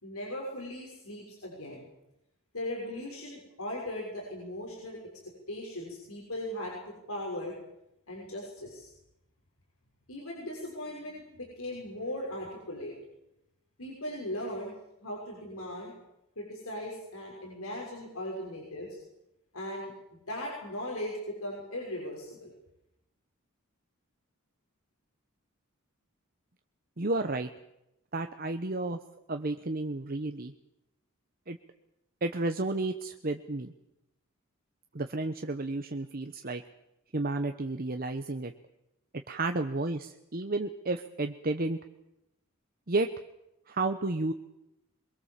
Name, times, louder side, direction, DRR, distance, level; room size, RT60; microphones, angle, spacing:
voice 1, 0.0-1.9 2.5-5.0 5.5-7.5 8.1-8.9 10.1-12.9 13.8-14.7 15.0-15.9 16.4-19.0 19.5-22.5, left 1 dB, 80° left, -2 dB, 6.5 m, -38 dB
voice 2, 27.0-27.5 28.1-29.0 29.3-30.5 31.5-31.6 32.2-33.7 34.9-36.6 37.1-38.5 39.3-41.8 42.9-43.1 43.7-44.3, right 2 dB, 40° right, 7 dB, 1.0 m, -32 dB
24.0 x 22.5 x 7.5 m, 0.87 s
head